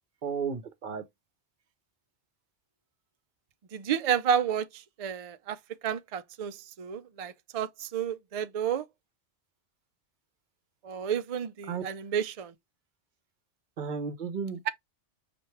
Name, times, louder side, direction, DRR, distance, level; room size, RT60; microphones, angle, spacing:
voice 1, 0.2-1.0 11.7-11.8 13.8-14.7, right 6 dB, 50° right, 0.8 m, -33 dB
voice 2, 3.7-5.6 5.8-8.9 10.8-12.5, right 8 dB, 75° right, 0.3 m, -31 dB
5.6 x 2.5 x 3.1 m
omnidirectional pair, 1.2 m